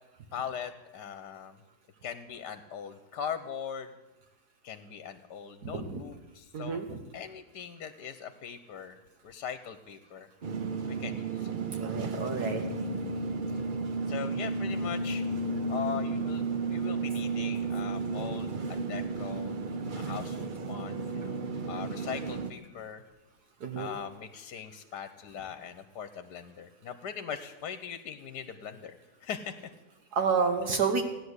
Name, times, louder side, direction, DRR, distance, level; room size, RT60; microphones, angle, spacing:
voice 1, 0.3-1.6 2.0-3.9 4.6-6.8 7.1-9.0 9.2-10.3 10.9-11.6 14.1-15.2 15.7-19.6 19.9-21.4 21.7-23.0 23.8-29.0 29.2-29.7, left 8 dB, 75° left, 10 dB, 1.4 m, -40 dB
voice 2, 5.6-6.0 6.5-7.0 11.8-12.6 23.6-23.9 30.1-31.0, right 5 dB, 65° right, 5 dB, 1.6 m, -29 dB
sound 1, 10.4-22.5, right 3 dB, 45° right, 0.7 m, -33 dB
16.0 x 10.0 x 8.1 m, 1.1 s
omnidirectional pair, 1.8 m